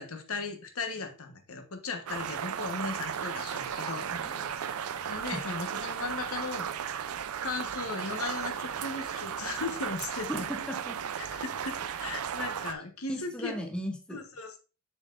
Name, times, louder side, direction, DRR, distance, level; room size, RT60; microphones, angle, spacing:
voice 1, 0.0-4.0 5.1-7.1 7.4-10.5 11.2-13.5 14.1-14.6, left 3 dB, 75° left, 6 dB, 1.2 m, -37 dB
sound 1, 2.1-12.7, right 8 dB, 85° right, 0.5 m, -35 dB
sound 2, 3.4-6.1, left 3 dB, 45° left, 1.2 m, -50 dB
voice 2, 10.3-11.0 11.8-12.0 13.1-14.2, equal, 5° left, 4 dB, 0.8 m, -37 dB
7.1 x 6.7 x 2.5 m, 0.34 s
head